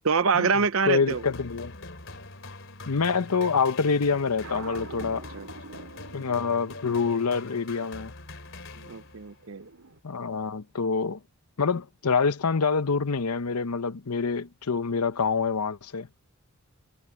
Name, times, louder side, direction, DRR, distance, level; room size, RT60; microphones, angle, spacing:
voice 1, 0.0-1.2 5.1-5.8 8.9-9.7, right 5 dB, 65° right, 0.7 m, -26 dB
voice 2, 0.8-1.7 2.9-5.3 6.1-8.1 10.0-11.2 11.6-16.1, left 5 dB, 85° left, 0.8 m, -26 dB
sound 1, 1.1-9.4, left 2 dB, 55° left, 3.5 m, -43 dB
sound 2, 4.4-10.0, right 3 dB, 85° right, 3.0 m, -46 dB
head